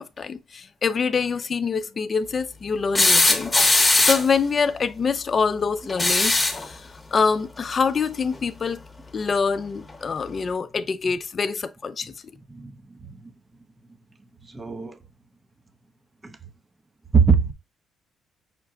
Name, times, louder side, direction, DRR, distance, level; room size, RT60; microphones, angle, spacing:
voice 1, 0.0-8.8 9.1-12.1, left 5 dB, 40° left, 0.5 m, -25 dB
sound 1, 2.9-4.4 5.9-6.7 8.3-8.4 9.9-10.0, left 2 dB, 15° left, 1.0 m, -19 dB
voice 2, 14.5-14.9 16.2-16.3 17.1-17.5, right 5 dB, 20° right, 0.7 m, -20 dB
5.9 x 2.2 x 3.6 m
cardioid pair, 90°, 0 cm